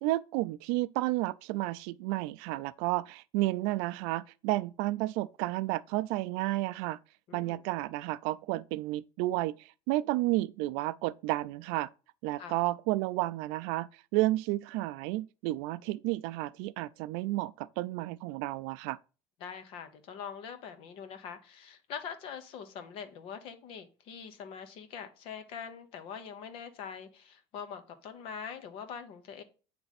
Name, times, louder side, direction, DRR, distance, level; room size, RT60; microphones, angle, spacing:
voice 1, 0.0-7.0 7.3-11.9 12.2-19.0, right 18 dB, 85° right, 0.4 m, -31 dB
voice 2, 7.3-7.6 12.4-12.6 19.4-29.4, left 7 dB, 55° left, 1.1 m, -43 dB
8.7 x 3.4 x 4.2 m
cardioid pair, 170°, 11 cm